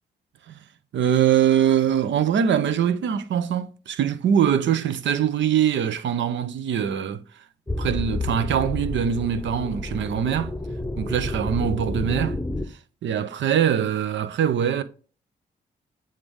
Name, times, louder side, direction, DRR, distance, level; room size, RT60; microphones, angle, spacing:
voice 1, 0.9-7.2 7.8-10.5 11.0-12.4 13.0-14.8, right 9 dB, 60° right, 0.7 m, -23 dB
sound 1, 7.7-12.7, left 2 dB, 5° left, 0.9 m, -30 dB
7.7 x 3.7 x 3.6 m
hypercardioid pair, 40°, 21 cm